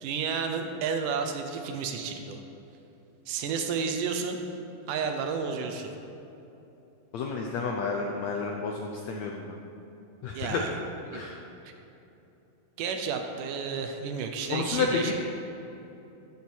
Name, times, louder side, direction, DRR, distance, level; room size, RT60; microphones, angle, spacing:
voice 1, 0.0-2.4 3.3-4.4 4.9-5.9 10.4-10.8 11.1-11.2 12.8-15.1, right 5 dB, 75° right, 5 dB, 2.2 m, -31 dB
voice 2, 7.1-9.5 10.2-10.6 11.1-11.4 14.5-15.1, left 4 dB, 80° left, 1 dB, 1.6 m, -30 dB
15.0 x 7.3 x 4.6 m, 2.9 s
omnidirectional pair, 4.0 m